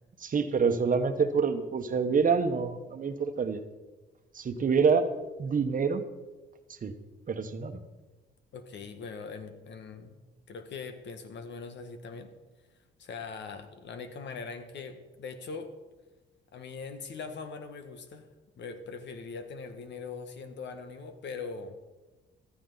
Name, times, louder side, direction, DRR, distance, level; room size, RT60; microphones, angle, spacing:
voice 1, 0.2-3.6 4.3-5.1 5.4-6.0 6.8-6.9 7.3-7.8, right 5 dB, 40° right, 8 dB, 1.1 m, -26 dB
voice 2, 8.5-10.2 10.5-12.3 13.0-15.7 16.5-18.3 18.6-21.8, left 4 dB, 65° left, 8 dB, 1.5 m, -41 dB
14.0 x 13.0 x 4.0 m, 1.2 s
cardioid pair, 90°, 20 cm